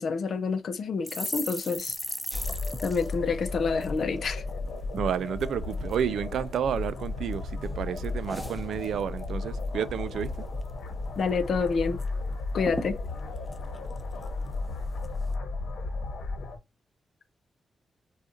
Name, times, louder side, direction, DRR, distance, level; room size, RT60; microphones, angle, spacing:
voice 1, 0.0-2.0 2.8-4.4 11.2-12.0 12.5-13.0, left 5 dB, 55° left, 0.5 m, -28 dB
sound 1, 1.0-4.6 4.9-5.1 5.4-6.0 6.5-7.3 7.6-9.3 9.6-9.8 10.1-10.7 11.0-11.1 11.4-12.1 12.3-12.4 12.6-14.5 15.0-15.3, left 1 dB, 5° left, 0.4 m, -39 dB
sound 2, 2.3-16.6, left 3 dB, 80° left, 1.1 m, -34 dB
voice 2, 4.9-10.3, right 8 dB, 85° right, 0.3 m, -30 dB
4.2 x 2.4 x 2.4 m
wide cardioid pair, 160°, 0 cm